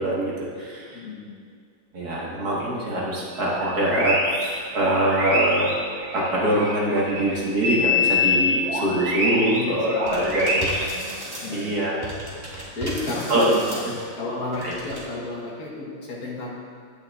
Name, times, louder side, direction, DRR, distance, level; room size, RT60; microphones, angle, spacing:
voice 1, 0.0-1.0 1.9-5.7 6.1-10.7 11.1-11.2 11.5-12.0 13.3-13.6 14.6-14.7, right 1 dB, 60° right, -5 dB, 1.9 m, -24 dB
voice 2, 0.9-1.3 9.5-10.7 11.4-11.9 12.8-13.9 14.2-16.5, left 2 dB, 55° left, -3 dB, 1.5 m, -32 dB
sound 1, 3.3-7.3 7.6-10.9, left 2 dB, 75° right, 2.3 m, -25 dB
sound 2, 10.1-11.8 12.0-14.1 14.5-15.0, right 1 dB, 15° right, 2.0 m, -35 dB
11.0 x 8.7 x 2.3 m, 2.1 s
omnidirectional pair, 2.0 m